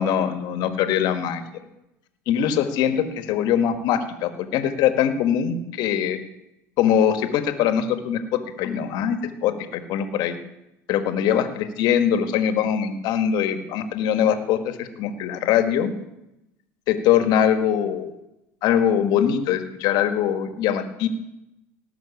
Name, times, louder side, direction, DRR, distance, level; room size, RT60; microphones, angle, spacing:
voice 1, 0.0-1.4 2.3-6.2 6.8-10.4 10.9-15.9 16.9-18.1 18.6-21.1, left 9 dB, 65° left, 9 dB, 1.6 m, -22 dB
18.0 x 6.0 x 7.2 m, 0.89 s
hypercardioid pair, 85°, 8 cm